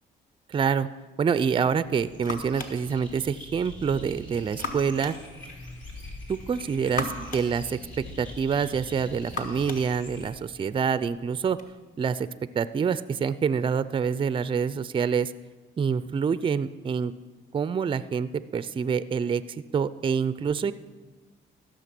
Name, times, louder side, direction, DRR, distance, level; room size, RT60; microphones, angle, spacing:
voice 1, 0.5-0.9 1.2-5.1 6.3-7.8 8.2-11.6 12.0-12.3 12.5-15.3 15.8-17.1 17.5-20.7, right 6 dB, 25° right, 15 dB, 0.4 m, -26 dB
sound 1, 1.6-11.7, left 3 dB, 45° left, 1.4 m, -41 dB
sound 2, 1.9-10.3, left 1 dB, 75° left, 2.5 m, -44 dB
14.0 x 6.5 x 6.0 m, 1.3 s
cardioid pair, 90°, 20 cm